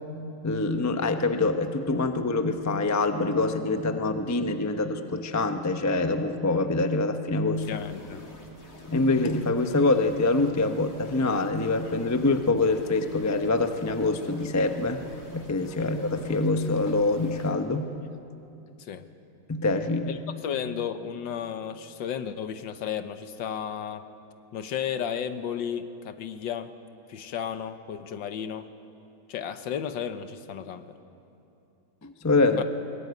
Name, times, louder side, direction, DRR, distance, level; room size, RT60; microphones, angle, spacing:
voice 1, 0.4-7.8 8.9-15.0 15.3-17.9 19.5-20.2 32.0-32.6, left 3 dB, 25° left, 7 dB, 0.4 m, -25 dB
sound 1, 7.5-17.5, left 1 dB, 45° left, 3.6 m, -47 dB
voice 2, 7.7-8.2 15.8-15.9 18.8-19.1 20.1-24.1 24.5-26.7 27.1-28.7 29.3-30.9 32.6-32.7, left 8 dB, 70° left, 10 dB, 1.6 m, -33 dB
21.5 x 19.5 x 9.5 m, 2.8 s
omnidirectional pair, 2.1 m